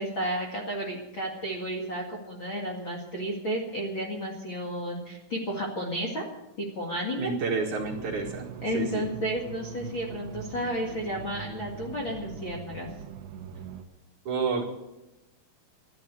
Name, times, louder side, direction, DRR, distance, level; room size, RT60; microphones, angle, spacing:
voice 1, 0.0-6.2 6.6-7.3 8.2-8.3 8.6-12.9, equal, 40° left, -2 dB, 1.9 m, -32 dB
voice 2, 7.2-8.5 8.7-9.1 14.3-14.6, right 4 dB, 55° right, -1 dB, 2.7 m, -29 dB
sound 1, 7.8-13.8, right 8 dB, 80° right, 3.5 m, -42 dB
13.0 x 11.0 x 8.0 m, 0.96 s
omnidirectional pair, 4.9 m